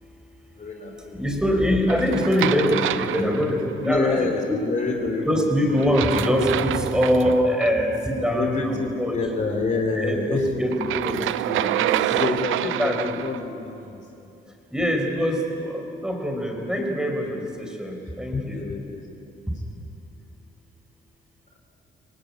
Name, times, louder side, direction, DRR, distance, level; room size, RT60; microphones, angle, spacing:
voice 1, 0.5-1.3 3.8-5.8 8.3-10.5 12.1-14.5 18.3-19.1 19.3-19.5, left 3 dB, 40° left, 3 dB, 3.0 m, -28 dB
voice 2, 1.1-4.6 5.2-9.2 9.9-12.0 12.8-13.2 14.7-18.6, equal, 5° right, 2 dB, 4.9 m, -24 dB
sound 1, 1.9-3.9 5.8-7.7 10.7-13.4, right 13 dB, 85° right, 0.7 m, -27 dB
25.0 x 18.5 x 9.9 m, 2.7 s
cardioid pair, 90°, 20 cm